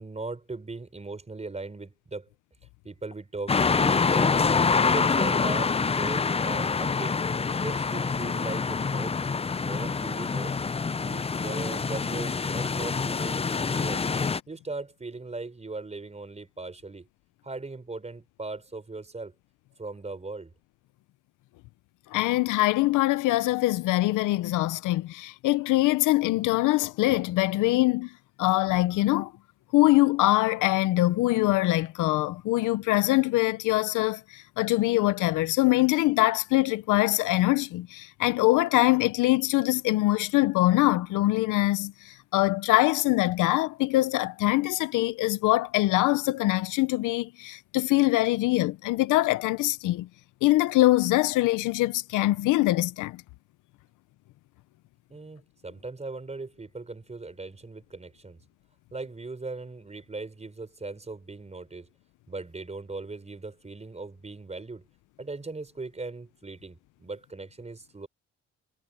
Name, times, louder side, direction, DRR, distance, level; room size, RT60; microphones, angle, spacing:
voice 1, 0.0-2.3 2.8-4.5 4.8-7.2 7.6-9.2 9.5-10.6 11.0-14.0 14.5-17.1 17.4-19.3 19.8-20.5 55.1-58.4 58.9-61.9 62.3-64.8 65.2-68.1, right 3 dB, 20° right, 5.0 m, -39 dB
sound 1, 3.5-14.4, left 5 dB, 20° left, 0.6 m, -26 dB
voice 2, 22.1-28.1 28.4-29.3 29.7-50.1 50.4-53.2, left 18 dB, 90° left, 0.7 m, -23 dB
cardioid pair, 90°, 30 cm